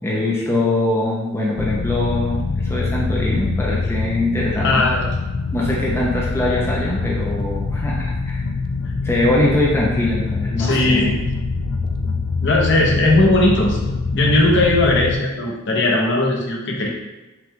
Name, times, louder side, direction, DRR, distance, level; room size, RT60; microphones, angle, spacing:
voice 1, 0.0-4.8 5.5-8.4 9.0-11.2, left 1 dB, 10° left, -4 dB, 0.5 m, -22 dB
sound 1, 1.6-15.2, left 4 dB, 80° left, 0.4 m, -24 dB
voice 2, 4.6-5.1 10.6-11.2 12.4-13.8 14.1-16.9, left 2 dB, 55° left, -1 dB, 0.9 m, -18 dB
5.8 x 2.4 x 3.6 m, 1.1 s
head